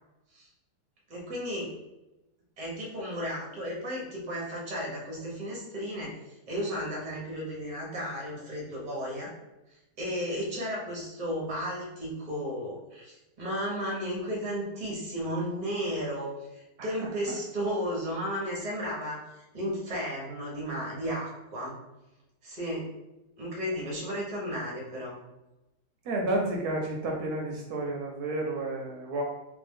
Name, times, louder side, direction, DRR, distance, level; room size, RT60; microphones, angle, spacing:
voice 1, 1.1-1.7 2.6-9.3 9.7-21.8 22.4-22.9 23.4-25.2, equal, 30° right, -3 dB, 0.9 m, -34 dB
voice 2, 16.8-17.1 26.0-29.2, right 2 dB, 75° right, 0 dB, 1.1 m, -31 dB
3.1 x 2.5 x 3.6 m, 0.98 s
omnidirectional pair, 1.8 m